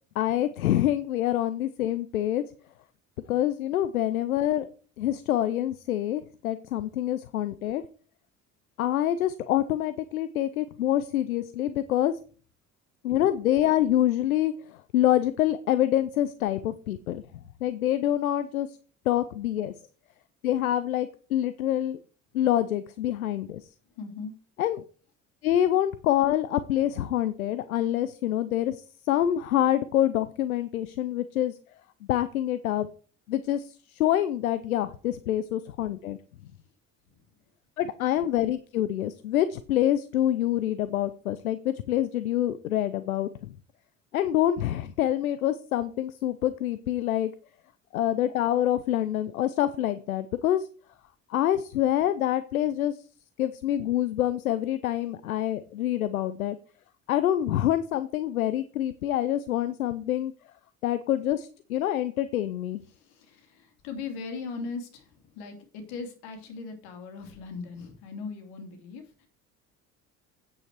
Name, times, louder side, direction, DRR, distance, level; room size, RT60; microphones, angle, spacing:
voice 1, 0.2-2.4 3.3-4.7 5.0-7.8 8.8-12.2 13.0-14.5 14.9-17.2 17.6-18.7 19.1-19.7 20.4-22.0 22.3-23.6 24.6-24.8 25.4-31.5 32.1-32.9 33.3-36.2 37.8-43.3 44.1-47.3 47.9-50.7 51.3-53.0 53.4-56.6 57.1-60.3 60.8-62.8, left 12 dB, 90° left, 13 dB, 0.7 m, -26 dB
voice 2, 23.9-24.3 37.1-37.2 62.9-69.3, left 4 dB, 70° left, 5 dB, 2.8 m, -39 dB
9.0 x 8.2 x 4.7 m, 0.39 s
hypercardioid pair, 60°, 41 cm